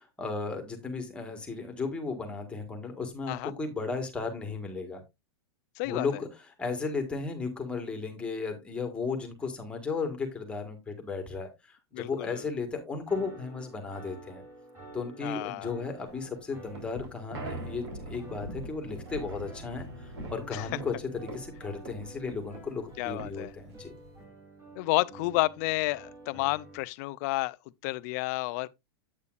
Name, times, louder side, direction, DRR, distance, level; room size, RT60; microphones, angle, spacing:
voice 1, 0.0-5.0 5.8-6.3 6.6-14.4 14.9-20.9 21.2-23.9, left 4 dB, 5° left, 1.6 m, -35 dB
voice 2, 5.8-6.1 11.9-12.5 15.2-15.7 20.5-20.7 23.0-23.5 24.8-27.6 27.8-28.7, left 21 dB, 40° left, 0.4 m, -31 dB
sound 1, 13.1-26.8, right 2 dB, 20° right, 2.9 m, -50 dB
sound 2, 16.1-24.2, right 1 dB, 70° right, 3.8 m, -43 dB
8.4 x 8.2 x 2.5 m
supercardioid pair, 160°, 14 cm